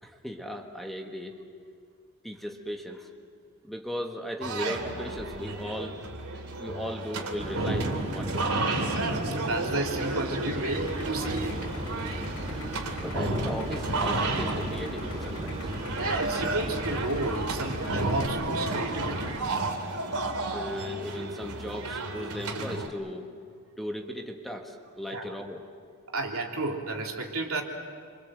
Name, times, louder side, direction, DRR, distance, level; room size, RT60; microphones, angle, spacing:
voice 1, 0.0-1.4 2.2-3.1 3.6-6.0 6.3-8.5 13.0-15.7 20.5-23.3 23.8-25.6, equal, ahead, 2 dB, 1.6 m, -37 dB
sound 1, 4.4-22.9, right 2 dB, 85° right, 2.8 m, -32 dB
sound 2, 7.4-19.4, right 1 dB, 30° right, 2.3 m, -37 dB
voice 2, 9.0-11.7 16.0-19.3 25.1-25.3 26.1-27.6, right 2 dB, 70° right, 0 dB, 3.3 m, -32 dB
Idling, 10.7-18.3, left 1 dB, 85° left, 3.8 m, -41 dB
28.0 x 25.0 x 7.7 m, 2.2 s
head